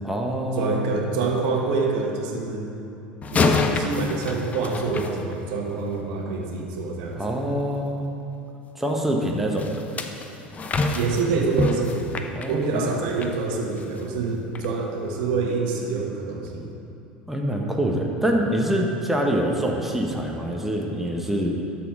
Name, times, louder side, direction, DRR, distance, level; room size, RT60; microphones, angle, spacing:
voice 1, 0.0-0.8 7.2-8.1 8.7-9.8 12.3-12.9 17.3-21.5, right 1 dB, 5° right, 0 dB, 1.2 m, -25 dB
voice 2, 0.6-2.7 3.3-7.2 10.9-16.7, right 4 dB, 65° right, 0 dB, 1.4 m, -26 dB
sound 1, 3.2-5.8 9.6-13.4 13.8-14.0 14.6-14.7, left 3 dB, 30° left, 0.7 m, -27 dB
12.5 x 4.4 x 4.8 m, 2.7 s
hypercardioid pair, 75°, 5 cm